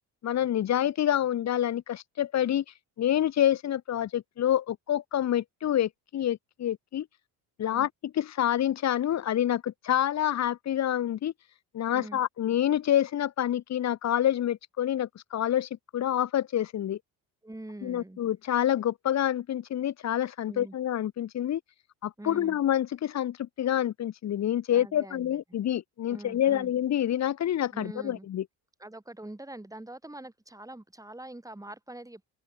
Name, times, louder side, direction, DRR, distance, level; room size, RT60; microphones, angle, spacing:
voice 1, 0.2-2.6 3.0-7.1 7.6-11.3 11.7-17.0 17.8-21.6 22.0-28.4, left 11 dB, 40° left, 0.8 m, -27 dB
voice 2, 11.9-12.2 17.4-18.2 20.5-20.8 22.2-22.6 24.7-25.4 26.1-26.7 27.7-28.3 28.8-32.2, right 1 dB, 10° right, 7.0 m, -44 dB
open air
supercardioid pair, 95°, 43 cm